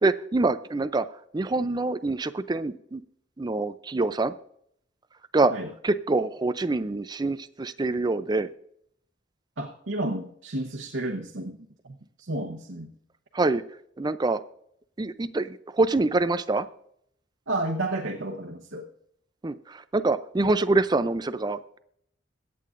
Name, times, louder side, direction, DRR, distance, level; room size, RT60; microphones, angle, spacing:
voice 1, 0.0-1.1 1.3-3.0 3.4-4.3 5.3-5.5 5.8-8.5 13.3-13.6 14.0-14.4 15.0-16.7 19.4-21.6, right 2 dB, 20° right, 13 dB, 0.4 m, -25 dB
voice 2, 9.6-11.6 11.8-12.9 17.5-18.9, right 2 dB, 80° right, 0 dB, 1.0 m, -31 dB
22.5 x 8.5 x 2.5 m, 0.70 s
head